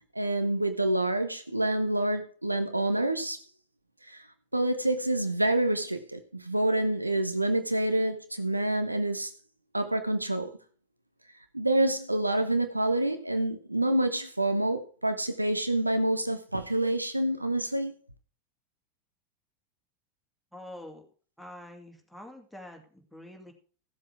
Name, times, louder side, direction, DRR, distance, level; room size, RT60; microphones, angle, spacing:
voice 1, 0.1-3.4 4.1-4.2 4.5-9.3 9.7-10.5 11.5-18.0, right 1 dB, 90° right, 0.9 m, -27 dB
voice 2, 20.5-21.0 21.4-23.5, left 1 dB, ahead, 2.6 m, -46 dB
15.5 x 7.6 x 4.8 m
figure-of-eight pair, 85°, 0 cm